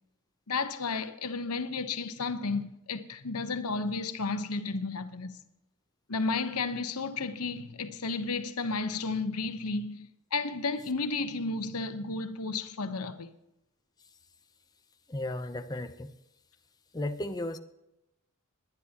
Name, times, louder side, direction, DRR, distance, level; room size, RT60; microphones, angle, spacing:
voice 1, 0.5-5.4 6.1-13.3, left 3 dB, 80° left, 1.0 m, -33 dB
voice 2, 15.1-16.2 16.9-17.6, left 1 dB, 15° left, 0.7 m, -34 dB
21.0 x 10.0 x 2.9 m
head